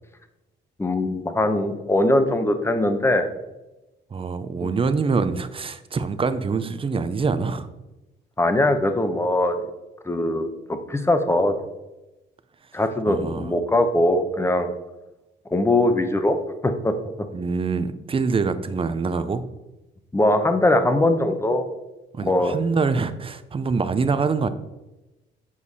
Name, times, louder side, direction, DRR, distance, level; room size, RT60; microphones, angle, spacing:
voice 1, 0.8-3.3 8.4-9.6 10.0-11.5 12.7-14.7 15.5-16.4 16.6-16.9 20.1-21.7 22.2-22.5, left 1 dB, 15° left, 8 dB, 0.8 m, -21 dB
voice 2, 4.1-7.7 13.1-13.5 17.3-19.4 22.1-24.5, right 4 dB, 25° right, 11 dB, 0.6 m, -25 dB
7.3 x 4.7 x 4.1 m, 1.0 s
cardioid pair, 90°, 20 cm